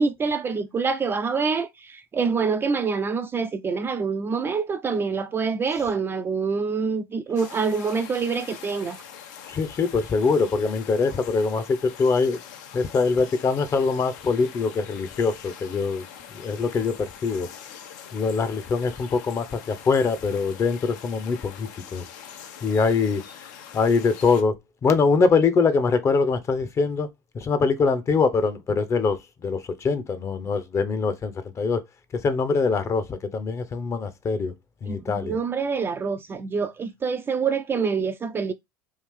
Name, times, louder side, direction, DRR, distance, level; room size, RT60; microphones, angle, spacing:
voice 1, 0.0-9.0 34.9-38.5, right 5 dB, 25° right, 0.4 m, -26 dB
sound 1, 7.4-24.4, left 8 dB, 70° left, 0.6 m, -43 dB
voice 2, 9.5-12.4 12.7-16.0 16.3-17.5 18.1-22.0 22.6-23.2 23.7-24.5 24.8-27.1 27.3-31.3 31.6-31.8 32.2-34.5 34.8-35.4, left 4 dB, 30° left, 0.6 m, -23 dB
3.2 x 2.4 x 3.5 m
hypercardioid pair, 90°, 10 cm